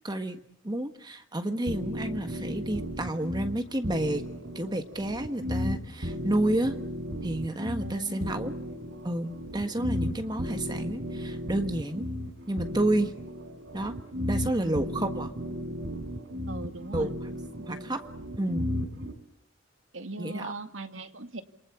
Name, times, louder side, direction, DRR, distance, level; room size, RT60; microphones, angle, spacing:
voice 1, 0.0-0.4 0.6-4.2 4.5-6.8 7.2-8.5 9.0-12.1 12.5-13.1 13.7-14.0 14.3-15.3 16.9-17.1 17.7-18.0 18.4-18.7 20.2-20.5, right 1 dB, 20° right, 8 dB, 1.5 m, -30 dB
sound 1, 1.7-19.1, equal, 65° right, 4.6 m, -35 dB
voice 2, 7.8-8.3 14.6-14.8 16.5-17.1 17.6-17.9 19.9-21.4, right 2 dB, 80° right, 8 dB, 2.2 m, -40 dB
28.0 x 23.5 x 8.6 m, 0.65 s
head